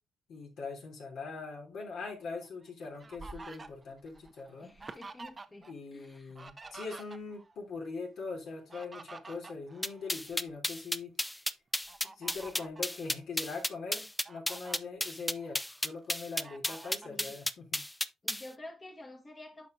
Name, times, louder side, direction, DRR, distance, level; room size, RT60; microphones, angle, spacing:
voice 1, 0.3-4.7 5.6-11.4 12.0-17.8, left 4 dB, 70° left, 3.2 m, -42 dB
Fowl, 2.4-5.7 6.0-7.5 8.5-10.6 11.0-11.2 11.9-12.9 13.5-13.6 14.0-14.8 15.3-16.0 16.4-17.2, right 3 dB, 30° right, 0.7 m, -49 dB
voice 2, 4.6-5.7 5.9-6.3 17.0-17.4 18.2-19.7, left 2 dB, 25° left, 1.3 m, -49 dB
sound 1, 9.8-18.5, left 1 dB, 5° left, 0.4 m, -32 dB
9.4 x 5.7 x 2.7 m
cardioid pair, 90°, 0 cm